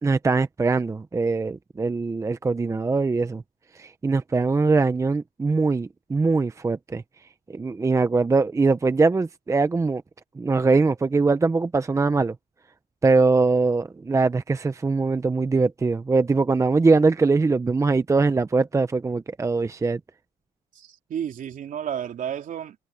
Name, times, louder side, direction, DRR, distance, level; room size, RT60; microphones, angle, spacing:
voice 1, 0.0-3.4 3.7-7.0 7.5-10.0 10.4-12.3 13.0-20.0, right 3 dB, 15° right, 0.7 m, -22 dB
voice 2, 20.8-22.7, right 9 dB, 50° right, 3.3 m, -32 dB
cardioid pair, 110°, 17 cm